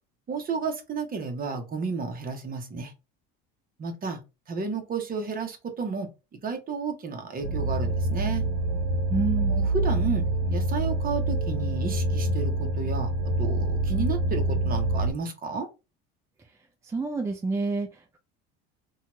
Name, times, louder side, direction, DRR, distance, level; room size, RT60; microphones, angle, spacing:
voice 1, 0.3-2.9 3.8-4.2 4.5-6.1 6.4-8.5 9.5-13.1 13.4-15.7, right 4 dB, 30° right, 0.8 m, -32 dB
sound 1, 7.4-15.1, right 2 dB, 70° right, 0.8 m, -26 dB
voice 2, 9.1-9.6 16.8-18.2, right 3 dB, 10° right, 0.3 m, -29 dB
2.7 x 2.3 x 2.9 m
supercardioid pair, 105°, 30 cm